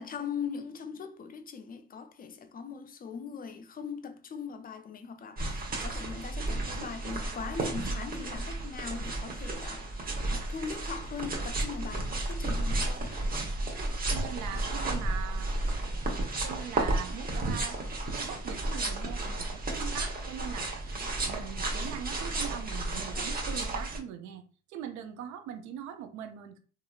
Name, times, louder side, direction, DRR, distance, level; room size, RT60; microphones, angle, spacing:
voice 1, 0.0-9.9 10.3-13.2, left 6 dB, 30° left, 0.4 m, -40 dB
sound 1, 5.4-24.0, right 2 dB, 30° right, 0.9 m, -33 dB
voice 2, 14.1-15.5 16.4-17.8 18.1-24.4 24.7-26.6, right 9 dB, 70° right, 0.6 m, -41 dB
2.7 x 2.5 x 2.3 m
supercardioid pair, 65°, 29 cm